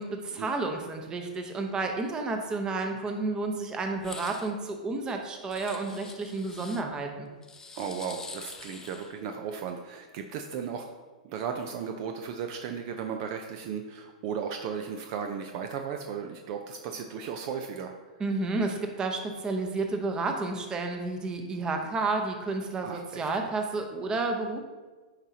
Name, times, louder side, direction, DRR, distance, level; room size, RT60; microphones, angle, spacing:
voice 1, 0.0-7.3 18.2-24.6, right 3 dB, 20° right, 4 dB, 0.9 m, -31 dB
sound 1, 4.0-4.5 5.5-6.8 7.4-9.2, left 4 dB, 10° left, 0.5 m, -45 dB
voice 2, 7.7-10.9 11.2-17.9 22.8-23.3, right 7 dB, 45° right, 5 dB, 0.5 m, -35 dB
9.7 x 4.8 x 2.8 m, 1.3 s
hypercardioid pair, 125°, 4 cm